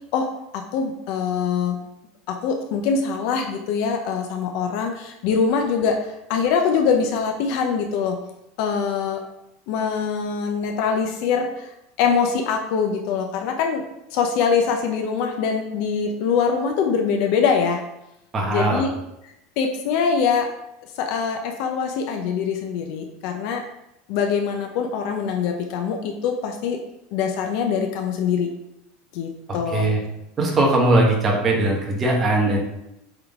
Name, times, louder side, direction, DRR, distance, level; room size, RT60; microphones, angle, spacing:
voice 1, 0.1-1.8 2.3-8.2 8.6-9.2 9.7-11.5 12.0-13.8 14.1-17.9 18.5-18.9 19.2-20.5 21.0-23.6 24.1-26.8 27.1-28.5 29.1-29.9, left 6 dB, 55° left, 4 dB, 0.7 m, -23 dB
voice 2, 18.3-18.8 29.7-30.0 30.4-32.6, right 2 dB, 20° right, -2 dB, 1.4 m, -19 dB
7.9 x 3.8 x 3.6 m, 0.85 s
supercardioid pair, 165°, 0 cm